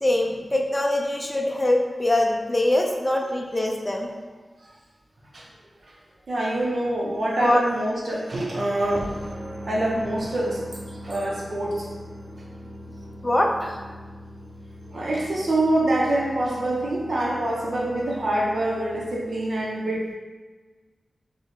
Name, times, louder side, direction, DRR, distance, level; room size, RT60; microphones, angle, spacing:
voice 1, 0.0-4.1 7.4-7.6 13.2-13.8, left 1 dB, 20° left, 1 dB, 0.5 m, -23 dB
voice 2, 6.3-9.2 9.7-10.6 11.0-11.9 14.9-20.1, right 1 dB, 65° right, -3 dB, 0.9 m, -25 dB
sound 1, 8.9-19.2, equal, 85° right, 0.6 m, -41 dB
5.1 x 2.4 x 3.2 m, 1.4 s
wide cardioid pair, 90°, 0 cm